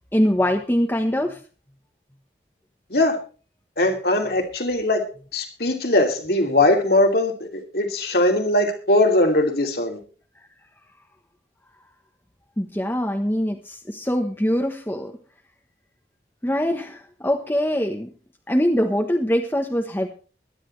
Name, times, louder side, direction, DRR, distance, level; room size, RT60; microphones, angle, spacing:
voice 1, 0.1-1.4 12.6-15.1 16.4-18.1 18.5-20.1, equal, 10° left, 2 dB, 1.2 m, -23 dB
voice 2, 3.8-5.0 5.3-10.0, left 1 dB, 60° left, 3 dB, 2.8 m, -20 dB
22.5 x 10.0 x 3.3 m, 0.38 s
head